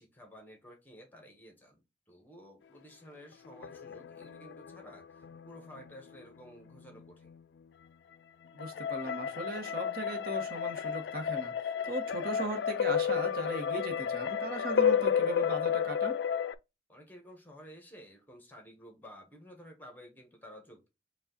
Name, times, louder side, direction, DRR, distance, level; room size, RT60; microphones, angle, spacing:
voice 1, 0.0-7.3 16.9-20.9, equal, 10° left, 1.1 m, -53 dB
sound 1, 3.5-6.2 8.6-16.5, left 8 dB, 75° left, 0.3 m, -32 dB
voice 2, 8.5-16.2, right 1 dB, 55° right, 1.0 m, -38 dB
4.8 x 2.3 x 3.8 m
head